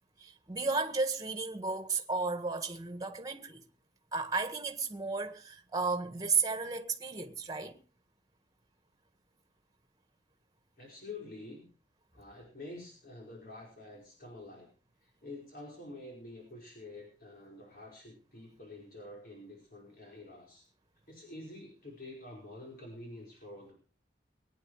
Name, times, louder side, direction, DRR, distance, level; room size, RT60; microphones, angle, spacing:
voice 1, 0.2-3.6 4.1-7.7, right 4 dB, 20° right, 1.7 m, -33 dB
voice 2, 10.8-11.6 12.1-14.7 15.0-20.6 21.1-23.7, left 2 dB, 55° left, 5.1 m, -48 dB
22.0 x 9.7 x 4.9 m
head